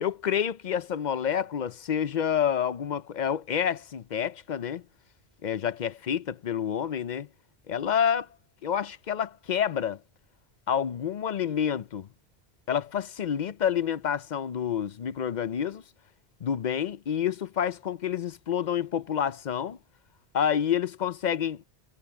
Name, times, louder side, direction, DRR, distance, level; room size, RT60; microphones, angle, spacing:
voice 1, 0.0-4.8 5.4-7.3 7.7-8.3 8.6-10.0 10.7-12.1 12.7-15.8 16.4-19.8 20.3-21.6, left 8 dB, 50° left, 0.6 m, -28 dB
omnidirectional pair, 1.1 m